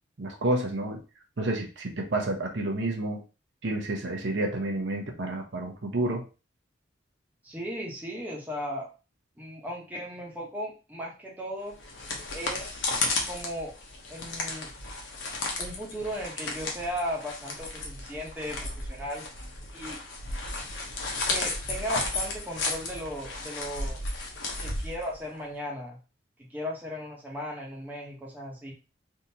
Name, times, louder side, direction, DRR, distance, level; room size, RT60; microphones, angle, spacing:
voice 1, 0.2-1.0 1.4-3.2 3.6-6.2, right 2 dB, 70° right, 2 dB, 0.8 m, -30 dB
voice 2, 7.4-8.9 9.4-11.7 12.3-13.0 13.3-13.7 14.1-14.7 15.6-19.2 19.7-20.0 21.3-24.0 24.6-26.0 26.5-28.7, equal, 10° right, -3 dB, 1.0 m, -36 dB
sound 1, 11.7-25.4, left 2 dB, 90° left, 0.9 m, -34 dB
3.6 x 2.7 x 2.8 m, 0.31 s
head